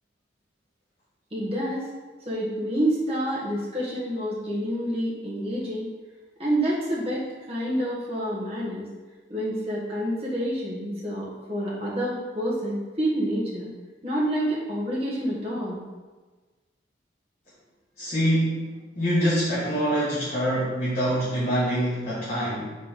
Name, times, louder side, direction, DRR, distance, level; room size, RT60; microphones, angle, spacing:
voice 1, 1.3-1.9 2.2-5.9 6.4-8.9 9.3-13.7 14.0-15.8, equal, 30° right, -7 dB, 1.4 m, -28 dB
voice 2, 18.0-22.7, equal, 35° left, -11 dB, 1.6 m, -25 dB
4.4 x 4.2 x 5.2 m, 1.3 s
head